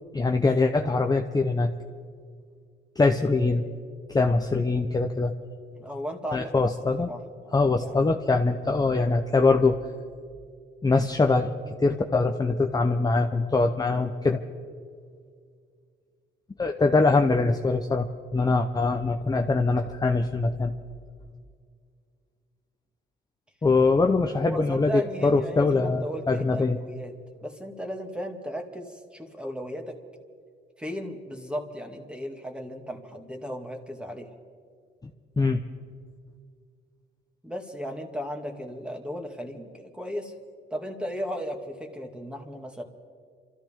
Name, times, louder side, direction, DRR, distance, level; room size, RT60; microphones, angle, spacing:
voice 1, 0.1-1.7 3.0-3.7 4.1-5.3 6.3-7.1 7.5-9.8 10.8-14.4 16.6-20.7 23.6-26.8 35.4-35.6, left 3 dB, 20° left, 4 dB, 0.8 m, -23 dB
voice 2, 5.7-6.7 7.1-7.2 7.6-8.0 24.3-27.1 27.4-30.0 30.8-34.3 37.4-40.3 40.7-42.8, equal, 5° right, 3 dB, 2.1 m, -35 dB
27.5 x 14.0 x 3.7 m, 2.1 s
cardioid pair, 90°, 20 cm